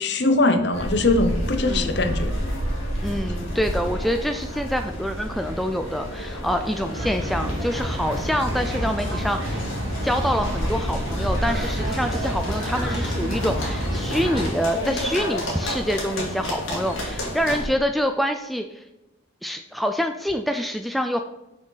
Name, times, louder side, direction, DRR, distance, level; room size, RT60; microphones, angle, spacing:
voice 1, 0.0-2.3, left 2 dB, 55° left, 8 dB, 0.8 m, -21 dB
sound 1, 0.7-17.7, equal, 90° left, 2.3 m, -30 dB
voice 2, 1.7-2.1 3.0-9.6 10.0-18.8 19.4-21.2, equal, ahead, 6 dB, 0.3 m, -26 dB
sound 2, 6.9-14.5, equal, 75° right, 2.0 m, -28 dB
6.2 x 6.0 x 4.0 m, 0.98 s
head